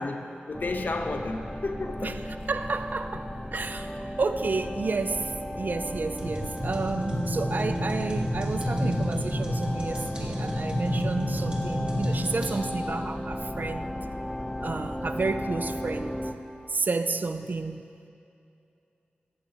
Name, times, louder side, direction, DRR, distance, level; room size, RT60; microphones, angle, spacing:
voice 1, 0.0-2.1, left 2 dB, 55° left, 6 dB, 0.7 m, -32 dB
sound 1, 0.5-16.3, left 1 dB, 10° left, 0.6 m, -35 dB
voice 2, 2.0-14.1 14.6-16.2 16.7-17.8, right 3 dB, 55° right, 9 dB, 0.4 m, -31 dB
sound 2, 6.2-12.5, equal, 30° right, 1.8 m, -30 dB
15.0 x 6.8 x 2.9 m, 2.6 s
wide cardioid pair, 60°, 4 cm